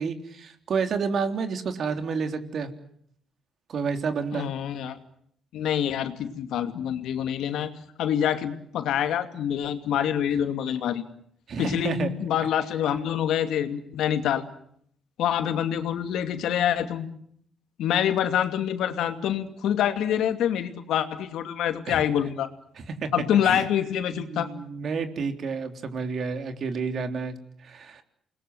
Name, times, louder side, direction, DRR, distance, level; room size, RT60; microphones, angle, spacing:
voice 1, 0.0-2.7 3.7-4.5 11.5-12.1 21.9-22.0 22.8-23.1 23.4-23.7 24.1-27.4 27.6-28.0, right 5 dB, 60° right, 7 dB, 3.6 m, -30 dB
voice 2, 4.3-5.0 5.5-7.7 8.0-11.0 11.6-14.4 15.2-17.1 17.8-22.5 23.1-24.5, left 9 dB, 80° left, 8 dB, 2.6 m, -26 dB
29.0 x 21.0 x 8.0 m, 0.67 s
cardioid pair, 90°, 0 cm